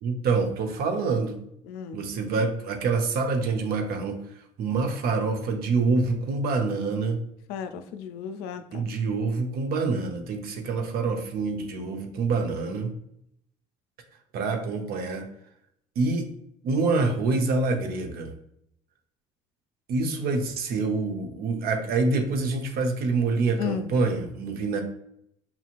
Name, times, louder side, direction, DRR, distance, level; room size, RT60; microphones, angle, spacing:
voice 1, 0.0-1.4 1.9-4.2 4.6-7.2 8.7-12.9 14.3-15.3 16.0-16.3 16.6-18.3 19.9-24.8, right 3 dB, 60° right, 5 dB, 0.7 m, -26 dB
voice 2, 1.7-2.0 7.5-8.8 23.6-23.9, left 7 dB, 70° left, 9 dB, 0.4 m, -34 dB
5.6 x 2.8 x 2.4 m, 0.73 s
hypercardioid pair, 60°, 18 cm